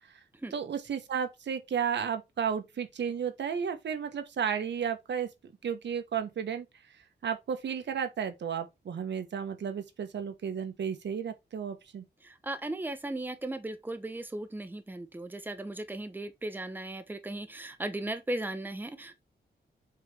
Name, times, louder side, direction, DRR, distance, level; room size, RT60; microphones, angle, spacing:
voice 1, 0.5-5.3 5.6-6.6 7.2-12.0, right 7 dB, 80° right, 1.5 m, -33 dB
voice 2, 12.2-19.2, right 1 dB, 10° right, 1.0 m, -37 dB
7.5 x 4.5 x 3.5 m
wide cardioid pair, 140°, 18 cm